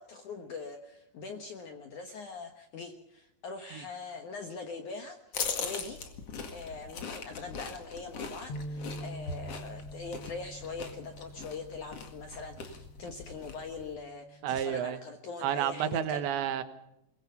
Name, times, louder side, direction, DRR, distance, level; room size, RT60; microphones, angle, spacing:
voice 1, 0.0-6.0 6.5-16.3, left 4 dB, 65° left, 5 dB, 2.0 m, -42 dB
sound 1, 5.3-14.0, left 5 dB, 45° left, 2.2 m, -41 dB
sound 2, 8.5-14.7, right 1 dB, 85° left, 5.8 m, -46 dB
voice 2, 14.4-15.0 15.4-16.6, right 10 dB, 75° right, 10 dB, 3.4 m, -30 dB
22.5 x 21.5 x 5.6 m, 0.86 s
omnidirectional pair, 5.3 m